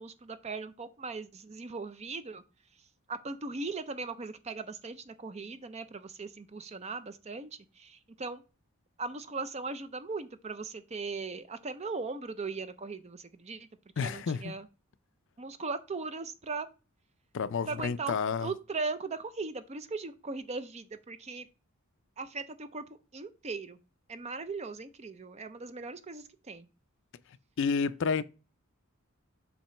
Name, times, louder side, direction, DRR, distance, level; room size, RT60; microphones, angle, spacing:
voice 1, 0.0-2.4 3.1-8.4 9.0-13.7 14.0-14.7 15.4-16.7 17.6-18.2 18.4-21.5 22.2-22.8 23.1-23.8 24.1-26.7, right 4 dB, 30° right, 0.5 m, -38 dB
voice 2, 14.0-14.5 17.3-18.5 27.6-28.2, left 5 dB, 60° left, 0.4 m, -30 dB
7.4 x 3.0 x 5.7 m
head